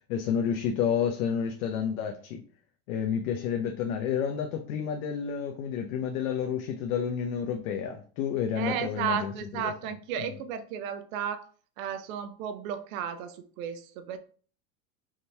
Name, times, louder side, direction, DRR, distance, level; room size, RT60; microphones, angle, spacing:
voice 1, 0.1-2.4 2.9-9.7, left 8 dB, 75° left, 0.7 m, -30 dB
voice 2, 8.6-11.4 11.8-14.2, right 8 dB, 70° right, 0.8 m, -33 dB
3.7 x 2.7 x 4.4 m
supercardioid pair, 125°, 42 cm